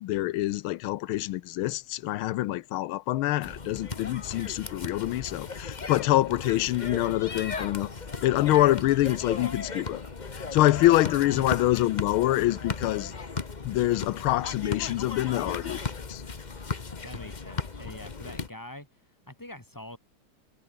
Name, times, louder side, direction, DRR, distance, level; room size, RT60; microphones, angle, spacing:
voice 1, 0.0-7.9 8.2-10.0 10.3-13.1 13.6-15.8 16.1-16.2, left 16 dB, 80° left, 1.5 m, -25 dB
sound 1, 3.4-18.5, left 4 dB, 25° left, 1.0 m, -36 dB
sound 2, 7.3-17.8, right 2 dB, 40° right, 6.9 m, -64 dB
voice 2, 17.0-18.9 19.3-20.0, left 1 dB, 10° left, 2.9 m, -44 dB
omnidirectional pair, 2.4 m